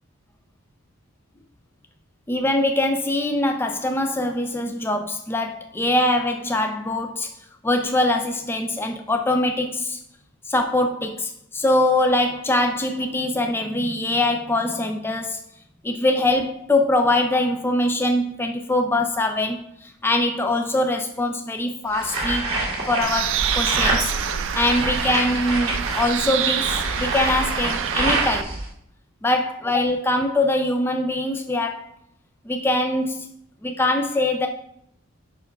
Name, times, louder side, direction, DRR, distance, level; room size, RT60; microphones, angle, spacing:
voice 1, 2.3-7.3 7.6-10.0 10.5-15.4 15.8-22.6 22.9-24.1 24.5-28.5 29.2-31.9 32.5-33.3 33.6-34.5, left 1 dB, 10° left, 5 dB, 0.3 m, -23 dB
sound 1, 21.9-28.7, right 2 dB, 30° right, 1.9 m, -27 dB
Bird, 23.0-28.4, right 9 dB, 65° right, 0.4 m, -26 dB
5.6 x 4.6 x 4.5 m, 0.73 s
head